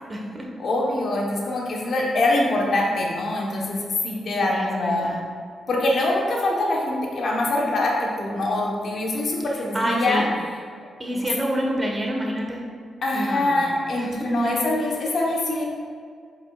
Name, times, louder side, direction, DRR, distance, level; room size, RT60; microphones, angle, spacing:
voice 1, 0.1-0.5 4.5-5.2 9.5-10.3 11.0-12.6 13.1-14.5 14.8-15.0, equal, 25° right, -1 dB, 1.4 m, -28 dB
voice 2, 0.6-5.1 5.7-10.2 11.1-11.3 13.0-15.6, left 2 dB, 60° left, -2 dB, 1.2 m, -24 dB
7.5 x 5.3 x 2.5 m, 2.1 s
supercardioid pair, 60°, 0 cm